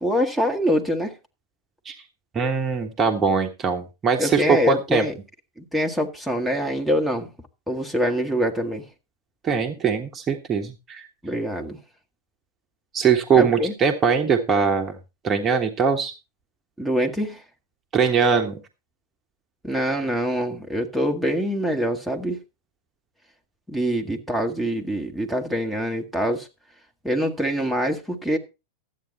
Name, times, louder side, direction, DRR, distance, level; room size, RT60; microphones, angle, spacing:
voice 1, 0.0-1.1 4.2-5.1 5.6-7.3 7.7-8.8 11.2-11.8 13.3-13.7 16.8-17.4 19.6-22.4 23.7-26.5 27.0-28.4, equal, ahead, 1.6 m, -24 dB
voice 2, 2.3-5.0 9.4-11.0 12.9-15.0 15.2-16.1 17.9-18.6, right 6 dB, 25° right, 1.2 m, -21 dB
12.5 x 8.4 x 4.2 m
figure-of-eight pair, 90°, 0 cm